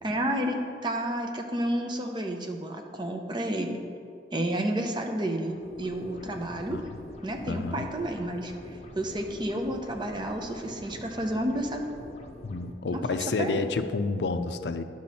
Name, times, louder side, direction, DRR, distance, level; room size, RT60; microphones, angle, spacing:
voice 1, 0.0-0.6 0.8-3.8 4.3-6.8 7.2-11.8 12.9-13.0 13.4-13.6, right 1 dB, 25° right, 3 dB, 0.7 m, -31 dB
sound 1, 5.5-12.7, left 1 dB, 40° left, 0.7 m, -45 dB
voice 2, 6.5-7.0 7.5-7.9 12.4-14.8, left 3 dB, 75° left, 9 dB, 0.5 m, -30 dB
10.0 x 6.2 x 4.2 m, 2.4 s
head